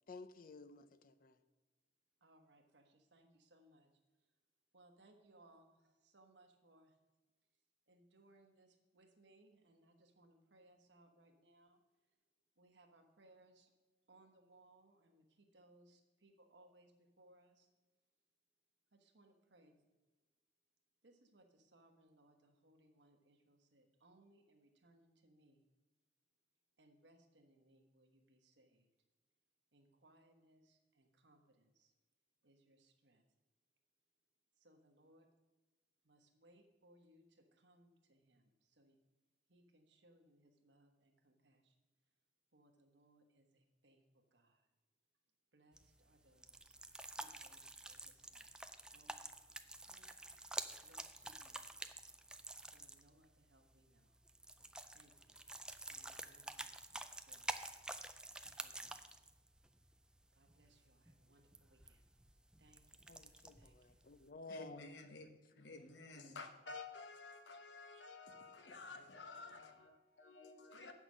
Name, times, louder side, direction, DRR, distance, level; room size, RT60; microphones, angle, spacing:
voice 1, 0.1-1.4 63.1-64.9 66.2-66.3, left 3 dB, 50° left, 0.5 m, -54 dB
voice 2, 2.2-3.9 4.7-7.0 7.9-11.8 12.6-13.7 14.1-17.7 18.9-19.8 21.0-25.7 26.8-28.9 29.7-31.9 32.4-33.2 34.6-35.3 36.0-39.0 39.5-41.9 42.5-44.7 45.5-46.8 47.2-48.5 48.9-49.3 49.9-50.1 50.8-51.7 52.7-54.2 54.9-55.4 55.9-57.9 58.6-59.1 60.3-62.0 62.6-63.7 65.9-66.1 67.9-68.1, right 1 dB, 80° right, 1.2 m, -69 dB
sound 1, 45.7-64.3, right 2 dB, 5° right, 0.3 m, -50 dB
voice 3, 64.5-65.3 65.6-70.9, left 4 dB, 80° left, 1.0 m, -52 dB
8.2 x 6.1 x 6.2 m
head